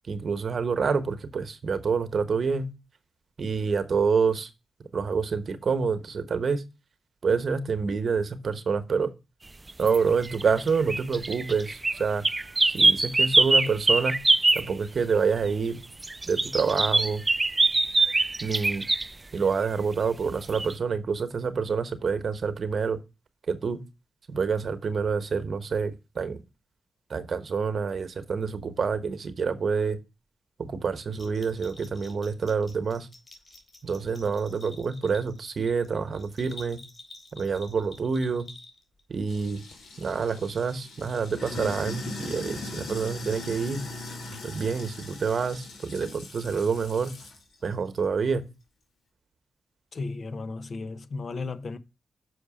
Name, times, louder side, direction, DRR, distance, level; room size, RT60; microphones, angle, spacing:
voice 1, 0.1-2.7 3.4-4.5 4.9-6.6 7.2-9.1 9.8-12.2 12.7-14.2 14.5-15.8 16.3-17.2 18.4-18.9 19.3-23.0 23.5-23.8 24.3-26.4 27.1-30.0 30.6-33.1 33.8-36.8 37.3-38.5 39.1-39.6 40.0-43.8 44.4-47.1 47.6-48.4, right 5 dB, 65° right, 1.1 m, -27 dB
sound 1, 9.7-10.0 10.2-14.7 16.0-19.1 20.5-20.7, right 2 dB, 30° right, 0.4 m, -23 dB
Bell, 31.1-39.0, left 2 dB, 40° left, 3.5 m, -49 dB
Sink (filling or washing), 39.3-47.4, left 2 dB, 85° left, 2.5 m, -40 dB
voice 2, 49.9-51.8, left 3 dB, 60° left, 0.8 m, -34 dB
6.5 x 5.0 x 4.9 m
supercardioid pair, 45°, 0 cm